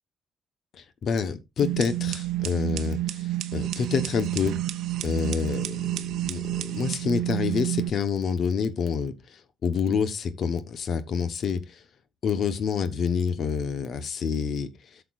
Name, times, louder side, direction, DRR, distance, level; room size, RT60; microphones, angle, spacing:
voice 1, 0.7-4.6 5.0-11.8 12.2-15.0, left 6 dB, 60° left, 1.2 m, -28 dB
sound 1, 1.6-7.9, right 15 dB, 85° right, 0.6 m, -30 dB
13.5 x 6.8 x 2.6 m
cardioid pair, 90°, 0 cm